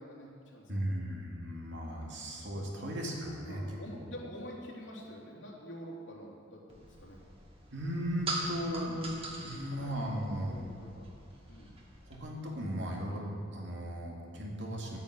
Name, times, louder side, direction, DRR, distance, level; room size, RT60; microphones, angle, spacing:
voice 1, 0.0-0.7 2.8-2.9 3.4-7.2 9.6-10.0 10.4-11.1 11.5-11.7, equal, 80° left, -4 dB, 3.1 m, -47 dB
voice 2, 0.7-3.8 7.7-10.5 12.1-13.2 13.5-15.0, equal, 65° right, -2 dB, 2.7 m, -36 dB
sound 1, 6.7-12.2, right 2 dB, 30° right, 2.1 m, -42 dB
11.5 x 9.4 x 8.2 m, 2.3 s
head